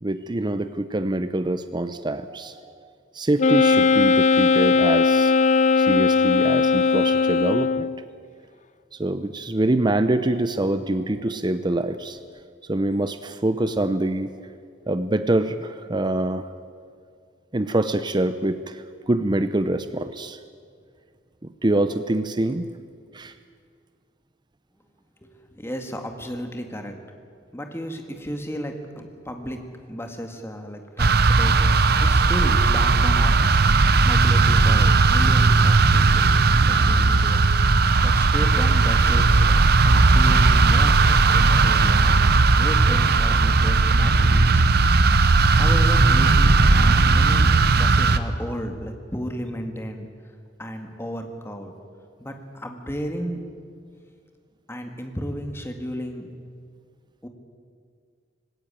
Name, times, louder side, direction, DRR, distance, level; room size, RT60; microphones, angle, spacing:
voice 1, 0.0-2.6 3.1-5.3 5.8-7.9 9.0-12.2 12.7-14.3 14.9-16.5 17.5-20.4 21.6-22.7 23.1-23.3, right 1 dB, 25° right, 11 dB, 0.7 m, -25 dB
Wind instrument woodwind instrument, 3.4-8.0, left 4 dB, 40° left, 0.5 m, -18 dB
voice 2, 25.2-27.0 27.5-29.6 29.9-36.4 36.6-37.5 37.7-42.3 42.6-44.7 45.5-50.1 50.6-51.7 52.2-53.4 54.7-56.3 57.2-57.3, equal, 15° left, 5 dB, 2.0 m, -33 dB
sound 1, 31.0-48.2, right 3 dB, 55° right, 0.9 m, -17 dB
19.5 x 17.0 x 9.2 m, 2.1 s
head